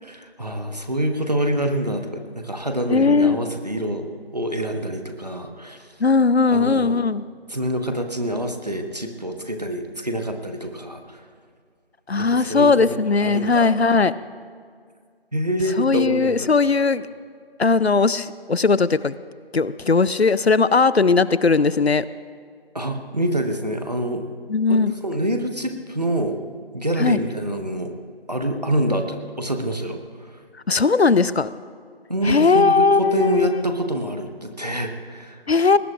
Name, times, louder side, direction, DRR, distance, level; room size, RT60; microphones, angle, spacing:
voice 1, 0.0-4.1 4.3-5.9 6.5-7.0 7.5-11.2 12.1-13.7 15.3-16.5 22.7-24.3 24.7-26.4 26.7-27.9 28.3-30.4 32.1-35.4, right 1 dB, 40° right, 5 dB, 1.2 m, -26 dB
voice 2, 2.9-3.4 6.0-7.2 12.1-14.1 15.8-17.1 17.6-19.1 19.5-22.0 24.5-24.9 27.0-27.2 30.7-31.5 32.2-33.6 35.5-35.8, left 4 dB, 80° left, 17 dB, 0.6 m, -18 dB
21.5 x 19.5 x 2.5 m, 2.1 s
figure-of-eight pair, 175°, 31 cm